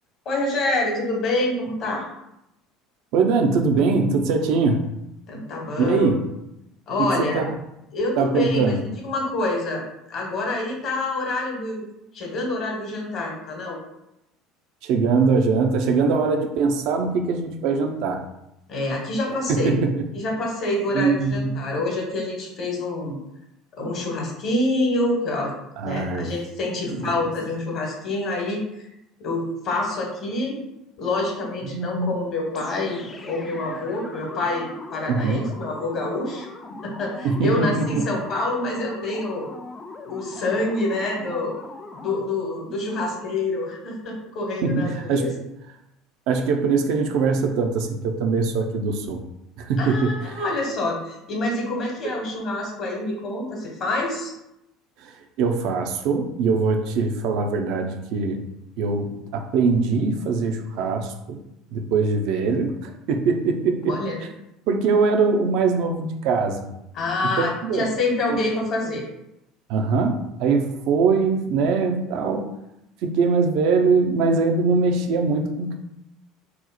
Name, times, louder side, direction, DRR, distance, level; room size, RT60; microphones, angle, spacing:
voice 1, 0.2-2.0 5.3-6.1 6.9-7.5 7.9-9.8 10.1-11.8 12.1-13.8 18.7-19.8 20.1-23.2 23.8-25.5 25.8-28.8 29.2-30.5 31.0-36.5 36.8-39.5 40.0-41.6 42.0-45.3 49.8-54.3 63.9-64.2 66.9-69.1, left 2 dB, 45° left, 0 dB, 1.0 m, -26 dB
voice 2, 3.1-4.8 5.8-6.2 7.0-7.5 8.2-8.8 14.8-18.2 19.5-20.1 20.9-21.7 25.8-26.3 26.9-27.0 31.6-32.1 35.1-35.5 37.2-38.1 44.6-45.4 46.3-49.2 49.6-50.4 52.0-52.2 55.0-58.4 58.8-61.4 61.7-63.9 64.7-66.6 67.6-67.9 69.7-72.5 73.0-75.8, right 4 dB, 60° right, 4 dB, 0.4 m, -22 dB
sound 1, 32.5-42.4, left 3 dB, 25° left, 0.4 m, -40 dB
2.8 x 2.0 x 3.9 m, 0.85 s
figure-of-eight pair, 65°, 0 cm